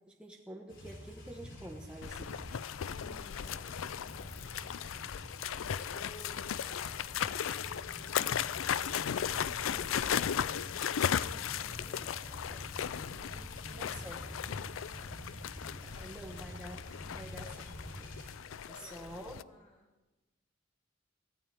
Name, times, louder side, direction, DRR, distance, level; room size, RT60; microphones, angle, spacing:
voice 1, 0.1-2.4 9.7-10.3 13.8-14.4 16.0-16.8 17.0-18.1 18.7-19.4, right 1 dB, 5° right, -1 dB, 1.2 m, -48 dB
sound 1, 0.7-18.3, equal, 70° left, 3.5 m, -48 dB
sound 2, 2.0-19.4, left 9 dB, 90° left, 0.4 m, -36 dB
voice 2, 2.8-5.3 5.7-9.4 11.5-16.5 18.6-19.9, equal, 40° left, -1 dB, 4.8 m, -59 dB
23.5 x 16.0 x 3.5 m, 1.1 s
head